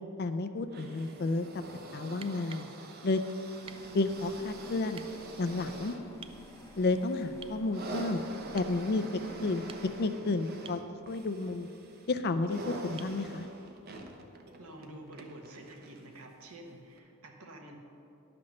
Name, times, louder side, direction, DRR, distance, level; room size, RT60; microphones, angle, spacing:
voice 1, 0.2-1.5 1.9-2.7 3.0-3.2 3.9-5.0 5.4-5.9 6.8-8.2 8.5-9.0 9.4-9.7 10.0-10.8 11.1-11.7 12.1-13.5, left 3 dB, 45° left, 9 dB, 0.4 m, -31 dB
sound 1, 0.7-16.2 17.0-17.1, right 2 dB, 45° right, 0.8 m, -46 dB
sound 2, 2.2-2.7 3.7-3.9 4.9-5.1 6.2-6.4 7.4-7.6 8.6-8.8 9.5-10.1 10.6-10.9 13.0-13.2 15.1-15.2, right 6 dB, 25° right, 0.3 m, -50 dB
sound 3, 3.6-10.1, left 2 dB, 15° left, 0.7 m, -52 dB
voice 2, 14.6-17.8, right 1 dB, 75° right, 2 dB, 1.3 m, -49 dB
11.0 x 6.0 x 6.3 m, 2.7 s
head